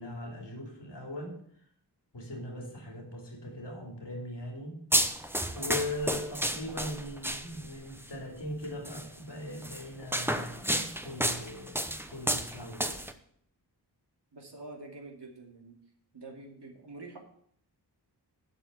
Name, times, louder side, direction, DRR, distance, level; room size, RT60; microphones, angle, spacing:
voice 1, 0.0-1.4 2.1-4.8 5.5-13.0, left 1 dB, 85° left, 0 dB, 3.0 m, -40 dB
sound 1, 4.9-7.8 8.9-9.1 9.6-13.1, right 1 dB, 5° right, 0.8 m, -31 dB
voice 2, 14.3-15.8 16.1-17.2, right 2 dB, 75° right, 0 dB, 2.5 m, -46 dB
11.5 x 4.5 x 8.1 m, 0.66 s
wide cardioid pair, 85°, 41 cm